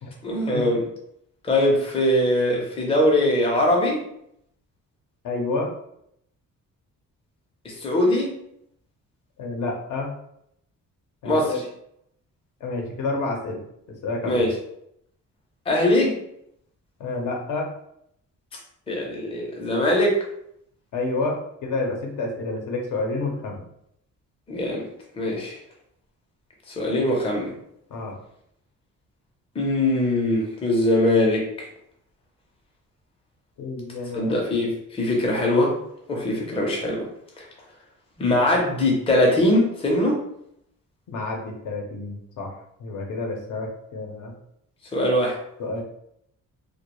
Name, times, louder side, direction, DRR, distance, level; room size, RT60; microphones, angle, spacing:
voice 1, 0.2-0.9 1.5-4.1 7.6-8.3 11.2-11.5 14.2-14.5 15.7-16.2 18.9-20.2 24.5-24.9 25.2-25.6 26.7-27.5 29.6-31.4 34.1-35.7 36.1-37.1 37.4-37.5 38.2-40.2 44.9-45.4, left 1 dB, 20° left, -1 dB, 0.5 m, -21 dB
voice 2, 5.2-5.7 9.4-10.1 11.2-11.6 12.6-13.6 14.0-14.5 17.0-17.7 20.9-23.6 27.9-28.1 33.6-34.3 41.1-44.3 45.6-45.8, left 3 dB, 75° left, 1 dB, 0.6 m, -29 dB
2.2 x 2.1 x 2.9 m, 0.74 s
cardioid pair, 155°, 32 cm